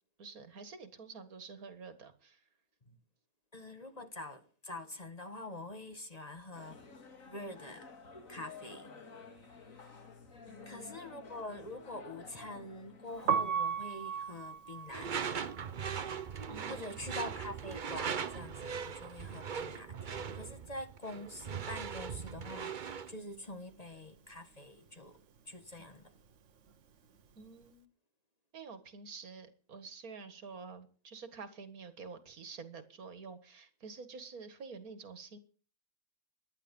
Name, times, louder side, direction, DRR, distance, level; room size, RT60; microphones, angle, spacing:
voice 1, 0.2-2.4 10.5-11.0 16.5-17.0 27.4-27.9 28.5-35.4, right 4 dB, 85° right, 2.1 m, -49 dB
voice 2, 3.5-6.8 7.3-7.9 8.3-10.0 10.6-15.4 16.7-26.1, left 1 dB, 30° left, 1.5 m, -46 dB
sound 1, 6.5-13.4, left 4 dB, 70° left, 2.4 m, -52 dB
Piano, 13.1-19.1 19.3-20.9 21.2-27.6, right 7 dB, 60° right, 1.3 m, -39 dB
Door / Screech, 14.9-23.1, right 7 dB, 40° right, 0.8 m, -40 dB
18.5 x 11.5 x 5.4 m
omnidirectional pair, 1.5 m